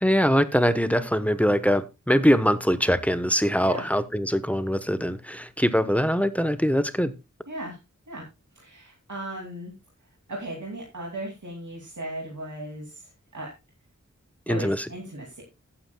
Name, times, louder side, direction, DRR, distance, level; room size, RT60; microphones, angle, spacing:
voice 1, 0.0-7.1 14.5-14.9, equal, 5° left, 12 dB, 1.0 m, -23 dB
voice 2, 7.5-7.8 8.1-8.2 8.6-9.7 10.3-13.5 14.5-15.4, right 1 dB, 75° right, -1 dB, 2.6 m, -36 dB
15.5 x 8.9 x 2.3 m, 0.25 s
wide cardioid pair, 45°, 30 cm